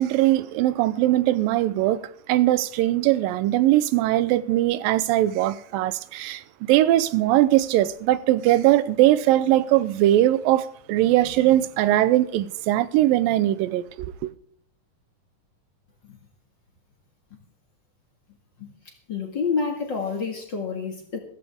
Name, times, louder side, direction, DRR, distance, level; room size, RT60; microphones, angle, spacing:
voice 1, 0.0-2.0 2.3-14.3, right 14 dB, 90° right, 2.4 m, -20 dB
voice 2, 19.1-21.2, left 5 dB, 40° left, 2.1 m, -28 dB
15.0 x 14.5 x 3.6 m
omnidirectional pair, 3.9 m